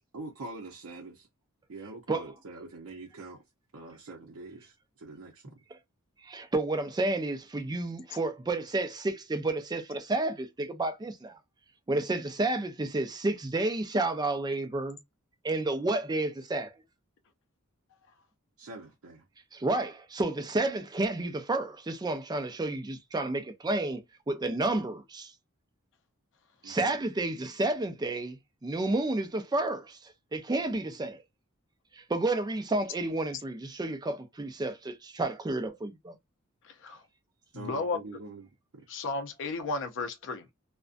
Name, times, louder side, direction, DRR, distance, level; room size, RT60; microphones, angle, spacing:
voice 1, 0.1-1.3 1.7-3.4 3.7-5.5 18.6-19.2 26.6-26.7 37.5-38.5, right 3 dB, 80° right, 0.6 m, -44 dB
voice 2, 6.2-11.4 11.9-15.0 15.4-16.7 19.5-25.3 26.6-30.0 30.3-31.2 31.9-36.1, right 2 dB, 20° right, 0.4 m, -31 dB
voice 3, 36.6-37.0 37.5-38.0 38.9-40.5, left 3 dB, 60° left, 0.5 m, -33 dB
2.5 x 2.1 x 2.4 m
head